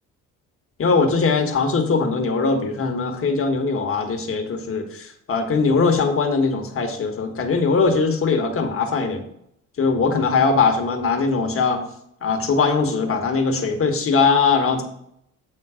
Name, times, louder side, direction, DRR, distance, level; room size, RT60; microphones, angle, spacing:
voice 1, 0.8-9.2 9.8-11.8 12.2-14.8, left 4 dB, 45° left, 4 dB, 1.4 m, -20 dB
8.7 x 3.8 x 5.0 m, 0.73 s
cardioid pair, 100°, 32 cm